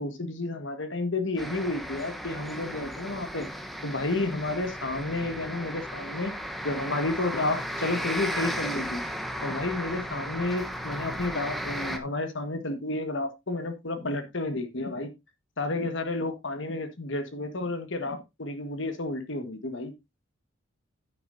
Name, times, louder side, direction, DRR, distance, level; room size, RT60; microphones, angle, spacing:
voice 1, 0.0-3.5 3.8-6.3 6.6-9.0 9.4-15.1 15.6-19.9, left 2 dB, 65° left, 1.5 m, -31 dB
sound 1, 1.4-12.0, equal, ahead, 1.0 m, -35 dB
9.9 x 9.2 x 2.6 m
head